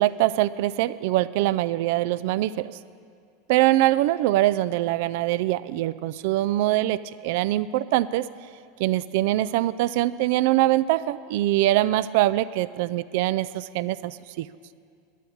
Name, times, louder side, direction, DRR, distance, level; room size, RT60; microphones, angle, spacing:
voice 1, 0.0-2.7 3.5-8.3 8.8-14.5, right 15 dB, 65° right, 16 dB, 0.3 m, -23 dB
12.5 x 7.1 x 9.3 m, 2.3 s
supercardioid pair, 140°, 0 cm